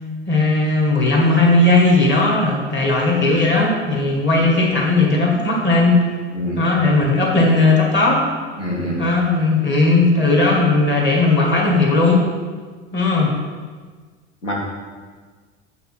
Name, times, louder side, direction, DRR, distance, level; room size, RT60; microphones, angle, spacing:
voice 1, 0.3-6.0 6.6-8.2 9.0-12.3 12.9-13.3, left 2 dB, 30° left, -1 dB, 1.9 m, -16 dB
voice 2, 8.6-9.0 14.4-14.5, equal, 85° left, -3 dB, 1.7 m, -25 dB
8.0 x 4.2 x 4.5 m, 1.5 s
figure-of-eight pair, 75°, 35 cm